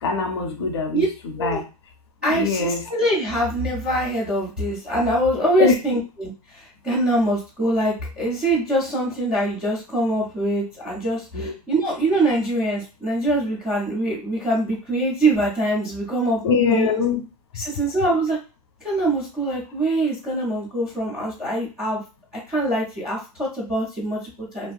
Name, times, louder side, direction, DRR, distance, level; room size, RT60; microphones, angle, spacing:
voice 1, 0.0-1.6 2.3-2.9 5.6-6.0 11.3-11.5 16.4-17.2, left 5 dB, 45° left, 5 dB, 0.6 m, -23 dB
voice 2, 2.2-16.9 17.6-18.4 18.8-22.0 22.5-24.7, right 1 dB, 5° right, -9 dB, 0.3 m, -23 dB
2.5 x 2.4 x 2.3 m, 0.32 s
hypercardioid pair, 165°, 19 cm